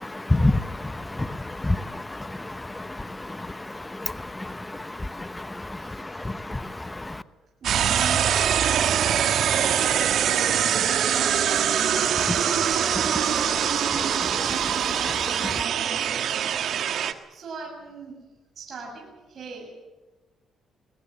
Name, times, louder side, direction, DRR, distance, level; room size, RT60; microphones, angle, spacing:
voice 1, 0.0-7.2 12.4-12.8 14.1-15.6, left 2 dB, 15° left, 13 dB, 0.9 m, -30 dB
voice 2, 5.7-6.4 7.6-12.3 12.7-14.2 14.6-15.4 15.8-16.8 17.3-18.1 18.6-19.7, right 4 dB, 50° right, 0 dB, 7.0 m, -39 dB
sound 1, 7.6-17.1, right 9 dB, 70° right, 1.5 m, -23 dB
22.0 x 20.0 x 7.5 m, 1.1 s
cardioid pair, 90°, 0 cm